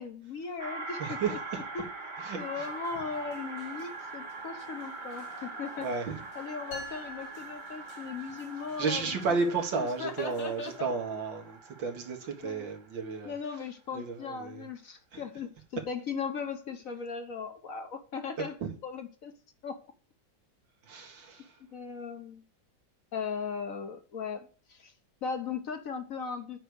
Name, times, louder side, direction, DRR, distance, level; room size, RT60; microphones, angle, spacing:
voice 1, 0.0-1.4 1.7-1.8 2.4-5.9 6.4-9.6 10.0-10.9 12.4-12.7 13.2-18.5 18.8-19.3 19.6-19.8 21.7-22.4 23.1-24.9 25.2-26.6, left 5 dB, 55° left, 1.2 m, -38 dB
sound 1, 0.6-13.3, right 3 dB, 35° right, 0.9 m, -43 dB
voice 2, 1.0-1.6 2.2-2.7 5.8-6.2 8.8-13.4 13.9-14.7 15.1-15.2 18.6-18.7 20.8-21.6, right 4 dB, 90° right, 2.4 m, -33 dB
sound 2, 2.4-10.8, left 4 dB, 70° left, 2.5 m, -58 dB
sound 3, 6.7-8.5, equal, 85° left, 4.9 m, -46 dB
8.9 x 4.9 x 6.4 m
omnidirectional pair, 2.0 m